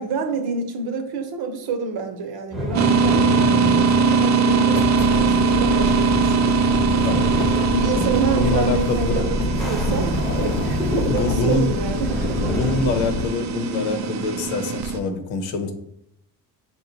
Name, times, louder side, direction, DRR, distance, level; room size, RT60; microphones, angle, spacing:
voice 1, 0.0-6.5 7.7-12.4, right 4 dB, 60° right, 6 dB, 0.9 m, -28 dB
sound 1, 2.5-13.1, left 1 dB, ahead, 0.8 m, -28 dB
sound 2, 2.7-15.0, right 5 dB, 45° right, 0.4 m, -22 dB
sound 3, 4.7-13.3, left 3 dB, 30° left, 0.4 m, -28 dB
voice 2, 7.9-9.2 10.9-11.7 12.4-15.7, left 3 dB, 85° left, 6 dB, 0.9 m, -25 dB
5.5 x 2.3 x 3.9 m, 0.74 s
cardioid pair, 95°, 42 cm